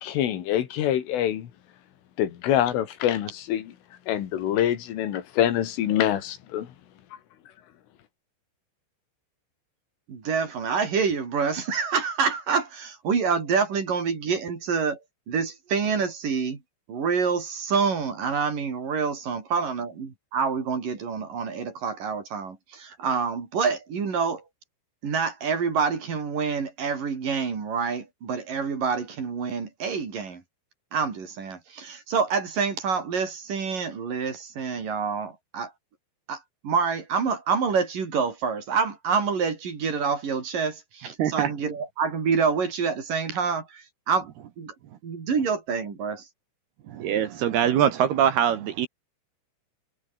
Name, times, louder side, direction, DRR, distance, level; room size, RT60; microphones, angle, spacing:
voice 1, 0.0-1.5 2.2-3.7 4.1-6.7, left 11 dB, 90° left, 4.9 m, -25 dB
voice 2, 10.1-15.0 15.3-16.6 16.9-24.4 25.0-30.4 30.9-35.7 36.3-44.3 44.6-44.7 45.0-46.3, right 5 dB, 45° right, 5.2 m, -27 dB
voice 3, 41.2-41.5 46.9-48.9, right 9 dB, 65° right, 3.2 m, -23 dB
omnidirectional pair, 5.5 m